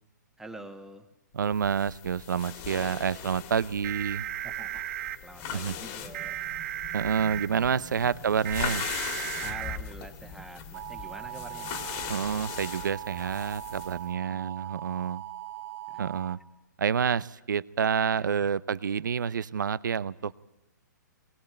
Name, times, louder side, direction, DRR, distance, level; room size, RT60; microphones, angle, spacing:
voice 1, 0.4-1.1 4.4-4.9 5.2-6.4 9.4-11.7 15.9-16.0, right 2 dB, 5° right, 7 dB, 1.4 m, -46 dB
voice 2, 1.3-4.3 5.5-5.8 6.9-8.9 12.1-15.2 16.0-16.4 16.8-20.4, right 7 dB, 75° right, 19 dB, 0.7 m, -28 dB
sound 1, 1.5-14.0, left 8 dB, 30° left, 2.0 m, -40 dB
sound 2, 3.8-5.2 6.1-7.5 8.5-9.8 10.7-16.3, right 13 dB, 45° right, 1.0 m, -37 dB
sound 3, 4.9-12.4, equal, 15° left, 1.6 m, -51 dB
20.5 x 19.5 x 8.8 m, 0.95 s
hypercardioid pair, 140°, 10 cm